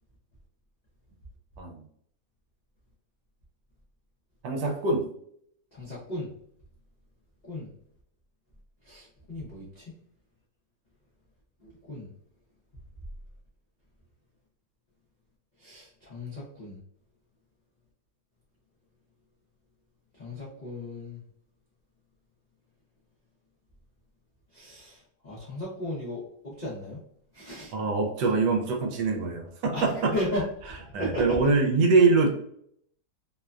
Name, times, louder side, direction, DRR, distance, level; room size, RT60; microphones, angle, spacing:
voice 1, 4.4-5.1 27.7-30.1 30.9-32.3, right 3 dB, 80° right, 2 dB, 1.2 m, -24 dB
voice 2, 5.7-6.3 7.4-7.7 8.8-9.9 11.6-12.1 15.6-16.8 20.2-21.2 24.5-27.0 27.3-27.7 29.7-30.4 30.7-31.4, left 1 dB, 75° left, -8 dB, 0.4 m, -35 dB
3.0 x 2.2 x 2.4 m, 0.67 s
omnidirectional pair, 1.9 m